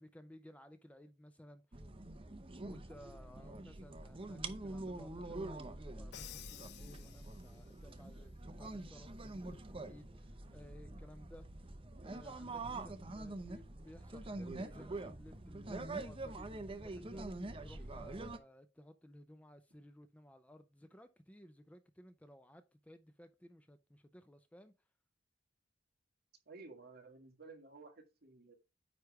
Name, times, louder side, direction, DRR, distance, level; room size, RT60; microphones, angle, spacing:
voice 1, 0.0-1.8 2.6-9.1 9.4-11.5 12.0-24.7, left 1 dB, 5° left, 0.5 m, -58 dB
sound 1, 1.7-18.4, right 2 dB, 30° right, 0.7 m, -45 dB
Crash cymbal, 6.1-7.8, left 13 dB, 60° left, 0.4 m, -53 dB
voice 2, 26.5-28.5, right 3 dB, 55° right, 1.8 m, -54 dB
9.3 x 3.3 x 4.7 m
head